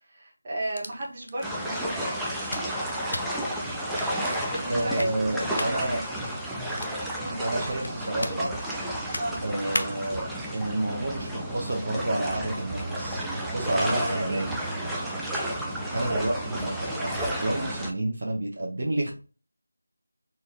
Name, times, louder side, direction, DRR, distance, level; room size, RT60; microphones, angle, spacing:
voice 1, 0.1-2.0 4.5-6.0 7.2-8.0 8.3-8.5 9.2-9.4 13.8-14.5 16.1-16.3, right 1 dB, 20° right, -4 dB, 1.1 m, -35 dB
sound 1, 0.6-10.2, left 1 dB, 70° left, 0.7 m, -40 dB
sound 2, 1.4-17.9, right 1 dB, ahead, 0.3 m, -32 dB
voice 2, 4.7-6.0 7.4-8.5 9.4-10.3 10.5-13.3 13.5-14.4 15.9-19.1, right 1 dB, 45° right, -1 dB, 0.8 m, -29 dB
4.3 x 2.5 x 3.2 m, 0.35 s
figure-of-eight pair, 175°, 0 cm